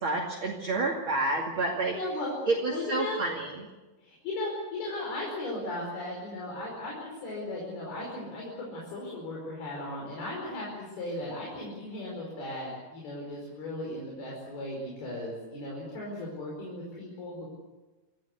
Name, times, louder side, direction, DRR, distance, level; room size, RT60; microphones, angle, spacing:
voice 1, 0.0-2.0 2.5-3.7, right 2 dB, 35° right, 0 dB, 2.8 m, -29 dB
voice 2, 1.9-2.3 2.7-3.2 4.0-17.5, left 1 dB, 75° left, -3 dB, 6.9 m, -36 dB
27.0 x 16.5 x 8.2 m, 1.2 s
omnidirectional pair, 4.4 m